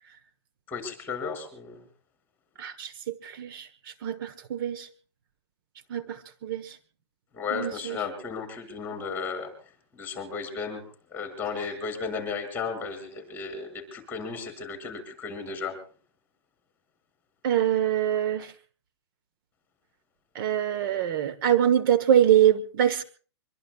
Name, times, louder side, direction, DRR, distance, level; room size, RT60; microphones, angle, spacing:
voice 1, 0.7-1.8 7.3-9.5 9.9-10.8 11.1-15.8, left 5 dB, 15° left, 5 dB, 6.3 m, -34 dB
voice 2, 2.6-4.9 5.9-6.8 7.5-8.0 17.4-18.5 20.3-23.0, right 10 dB, 50° right, 10 dB, 1.4 m, -24 dB
25.5 x 23.0 x 2.5 m, 0.41 s
hypercardioid pair, 155°, 15 cm